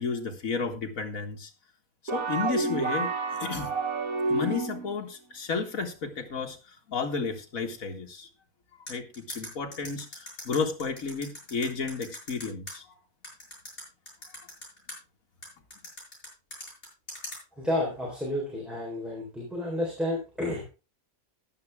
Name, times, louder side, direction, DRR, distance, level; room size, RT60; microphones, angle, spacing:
voice 1, 0.0-1.5 2.0-3.7 4.3-8.3 8.9-13.0, left 5 dB, 70° left, 3 dB, 2.0 m, -32 dB
sound 1, 2.1-5.0, right 3 dB, 80° right, 1.9 m, -29 dB
sound 2, 8.9-12.7 13.2-15.0 15.4-17.4, left 1 dB, 40° left, 7.0 m, -40 dB
voice 2, 17.6-20.7, left 1 dB, ahead, -3 dB, 3.7 m, -31 dB
13.5 x 10.0 x 3.5 m, 0.31 s
omnidirectional pair, 1.5 m